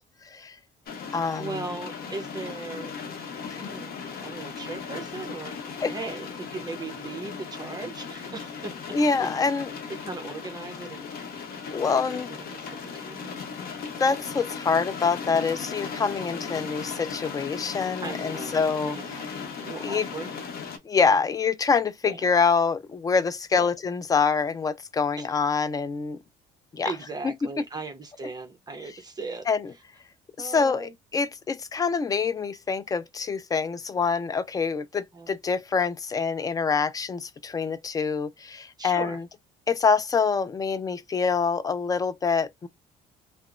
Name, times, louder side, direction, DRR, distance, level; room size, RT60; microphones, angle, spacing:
voice 1, 0.2-0.6 1.1-1.6 3.4-3.9 5.8-5.9 8.9-9.7 11.7-12.3 14.0-19.2 19.8-20.1 20.8-26.2 26.7-26.9 29.5-29.7 30.4-39.2 39.7-42.7, left 5 dB, 20° left, 0.3 m, -26 dB
sound 1, 0.9-20.8, left 6 dB, 65° left, 0.8 m, -37 dB
voice 2, 1.4-2.9 3.6-5.6 5.9-9.5 10.0-11.1 11.7-12.0 12.3-13.4 16.1-16.2 18.0-18.6 18.8-19.3 19.6-20.3 21.0-21.1 22.0-22.2 23.5-23.7 25.2-25.3 26.8-29.5 30.4-30.9 35.1-35.3 38.8-39.2, right 3 dB, 25° right, 0.7 m, -38 dB
2.9 x 2.0 x 2.4 m
cardioid pair, 110°, 17 cm